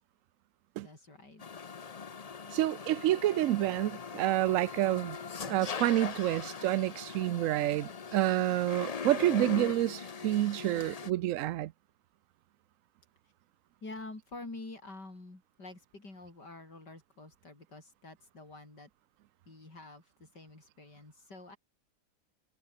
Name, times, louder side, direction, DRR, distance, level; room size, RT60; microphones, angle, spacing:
voice 1, 0.8-1.4 13.8-18.9 19.5-21.6, left 2 dB, 75° left, 6.8 m, -48 dB
sound 1, 1.4-11.1, left 6 dB, 45° left, 0.4 m, -41 dB
voice 2, 2.5-5.2 5.4-11.7, right 14 dB, 70° right, 0.8 m, -28 dB
omnidirectional pair, 1.8 m